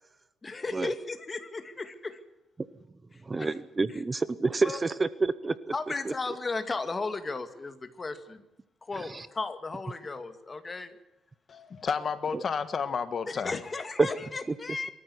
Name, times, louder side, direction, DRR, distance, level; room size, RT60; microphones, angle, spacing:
voice 1, 0.4-2.2 3.1-3.6 3.9-4.0 4.6-4.8 5.7-8.4 8.8-11.0 13.3-14.9, left 3 dB, 25° left, 9 dB, 2.1 m, -35 dB
voice 2, 3.3-5.5 14.0-14.1, right 3 dB, 20° right, 16 dB, 0.8 m, -27 dB
voice 3, 11.5-13.6, left 6 dB, 40° left, 11 dB, 1.5 m, -31 dB
23.5 x 14.0 x 9.8 m, 0.95 s
cardioid pair, 120°, 0 cm